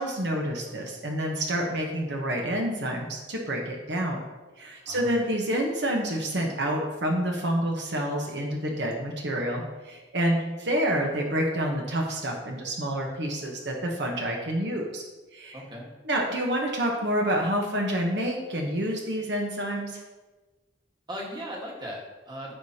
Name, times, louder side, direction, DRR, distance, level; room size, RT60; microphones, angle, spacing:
voice 1, 0.0-4.2 4.6-15.0 15.3-15.6 16.1-20.0, right 1 dB, 65° right, 1 dB, 1.1 m, -28 dB
voice 2, 15.5-15.9 21.1-22.5, equal, 25° right, -2 dB, 1.6 m, -38 dB
13.5 x 4.9 x 2.9 m, 1.2 s
head